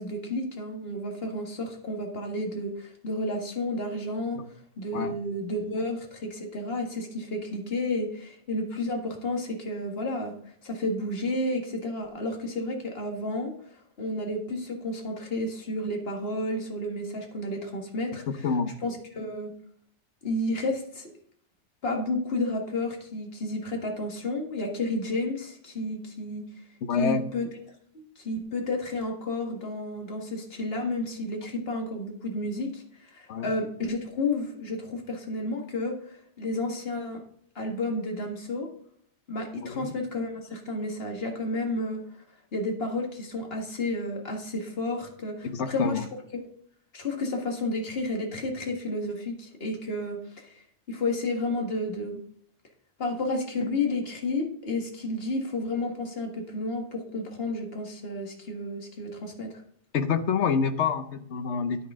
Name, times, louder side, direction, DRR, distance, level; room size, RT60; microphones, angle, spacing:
voice 1, 0.0-4.4 4.8-10.3 10.6-13.5 14.0-18.5 18.8-19.5 20.2-21.1 21.8-26.4 27.0-27.5 27.9-37.2 37.6-38.7 39.3-42.0 42.5-46.1 46.3-46.4 46.9-50.6 50.9-52.2 53.0-59.5, left 2 dB, 55° left, 1 dB, 1.9 m, -31 dB
voice 2, 18.4-18.7 26.8-27.3 33.3-33.5 39.6-39.9 45.4-46.1 59.9-61.9, left 6 dB, 70° left, 10 dB, 1.1 m, -27 dB
9.8 x 9.7 x 3.7 m, 0.63 s
omnidirectional pair, 1.2 m